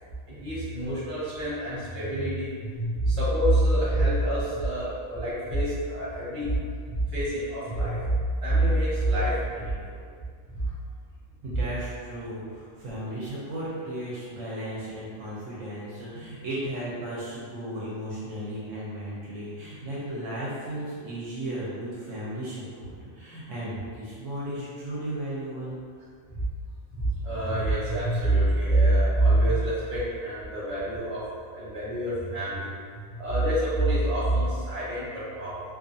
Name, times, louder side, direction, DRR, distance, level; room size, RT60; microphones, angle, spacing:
voice 1, 0.3-6.6 6.8-10.0 10.5-10.7 26.4-26.5 26.9-31.2 31.5-35.6, right 1 dB, 25° right, -10 dB, 0.9 m, -26 dB
voice 2, 11.4-25.8, right 1 dB, 70° right, -8 dB, 0.9 m, -35 dB
2.4 x 2.4 x 2.6 m, 2.1 s
omnidirectional pair, 1.4 m